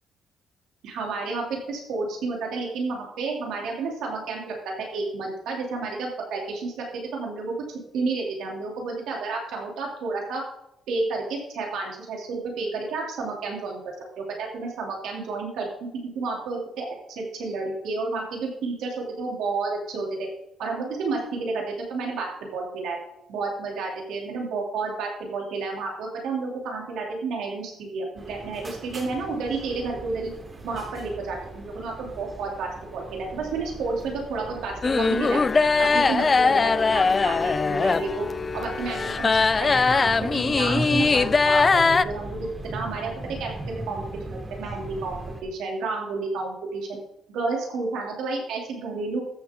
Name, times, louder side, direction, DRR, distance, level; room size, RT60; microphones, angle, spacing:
voice 1, 0.8-7.5 7.9-10.4 10.9-13.8 14.2-20.3 20.6-23.0 23.3-30.3 30.6-35.4 35.8-38.2 38.5-41.7 42.0-43.5 43.9-47.0 47.3-49.2, right 3 dB, 85° right, -1 dB, 2.7 m, -31 dB
sound 1, 28.2-45.4, right 2 dB, 30° right, 2.4 m, -38 dB
sound 2, 34.8-42.0, left 4 dB, 30° left, 0.4 m, -21 dB
14.0 x 7.4 x 3.7 m, 0.80 s
cardioid pair, 90°, 0 cm